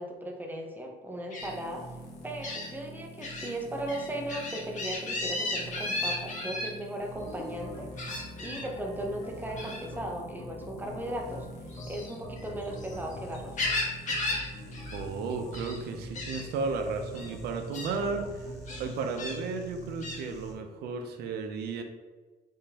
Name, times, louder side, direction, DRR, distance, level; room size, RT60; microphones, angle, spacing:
voice 1, 0.0-1.9 2.2-11.5 11.9-13.6, right 1 dB, 10° right, 1 dB, 0.6 m, -37 dB
Gull seagull, 1.3-1.5 2.4-2.7 3.2-3.5 3.9-6.7 8.0-8.7 9.6-9.8 11.7-13.0 13.3-14.5 14.7-15.0 15.3-15.8 16.1-16.4 17.1-17.3 17.7-17.9 18.7-19.4 20.0-20.2, left 2 dB, 45° left, 1.2 m, -34 dB
sound 1, 1.4-20.5, right 1 dB, 90° left, 1.0 m, -45 dB
sound 2, 7.1-18.9, left 2 dB, 30° left, 0.6 m, -46 dB
voice 2, 14.9-18.5 18.8-21.8, right 4 dB, 75° right, 6 dB, 0.5 m, -34 dB
3.6 x 3.4 x 2.8 m, 1.3 s
cardioid pair, 110°, 17 cm